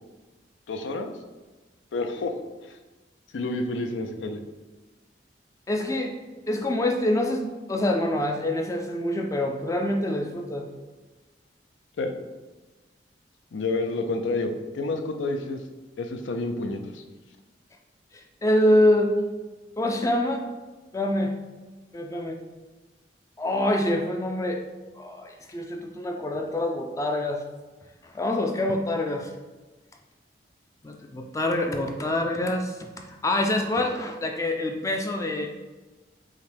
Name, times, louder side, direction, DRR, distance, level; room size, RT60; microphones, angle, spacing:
voice 1, 0.7-1.1 1.9-2.3 2.6-2.8 3.3-4.4 12.0-12.1 13.5-15.6 16.0-17.0, left 2 dB, 90° left, 6 dB, 0.5 m, -29 dB
voice 2, 5.7-6.2 6.5-10.6 18.1-19.1 19.8-20.4 20.9-21.3 21.9-22.4 23.4-24.6 25.0-27.4 28.0-29.3 30.8-35.5, left 1 dB, 15° left, 3 dB, 0.3 m, -25 dB
5.6 x 2.1 x 3.3 m, 1.2 s
head